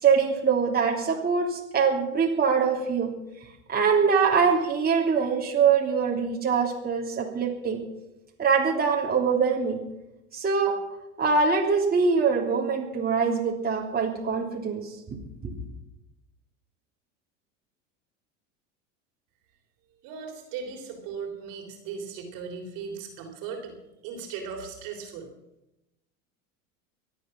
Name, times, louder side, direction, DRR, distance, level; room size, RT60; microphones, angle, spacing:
voice 1, 0.0-3.1 3.7-7.8 8.4-9.8 10.3-10.8 11.2-15.0 15.4-15.5, right 5 dB, 25° right, -1 dB, 3.2 m, -23 dB
voice 2, 20.0-23.7 24.0-25.3, right 6 dB, 55° right, 3 dB, 3.7 m, -37 dB
24.0 x 8.6 x 6.0 m, 0.93 s
hypercardioid pair, 85°, 39 cm